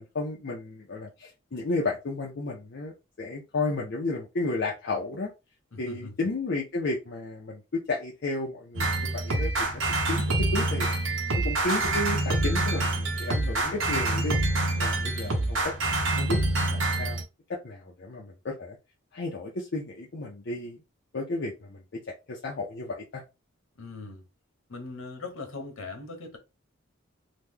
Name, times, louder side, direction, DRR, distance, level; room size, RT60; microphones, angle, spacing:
voice 1, 0.0-5.3 5.8-10.9 11.4-14.4 14.8-15.7 16.2-16.4 16.7-17.2 17.5-18.8 19.1-20.8 21.1-22.0 22.3-23.2, left 2 dB, 55° left, 0.6 m, -33 dB
voice 2, 5.7-6.2 23.8-24.2 24.7-26.4, left 3 dB, 85° left, 0.8 m, -40 dB
sound 1, 8.7-17.2, right 2 dB, 70° right, 0.9 m, -26 dB
2.9 x 2.2 x 3.5 m
head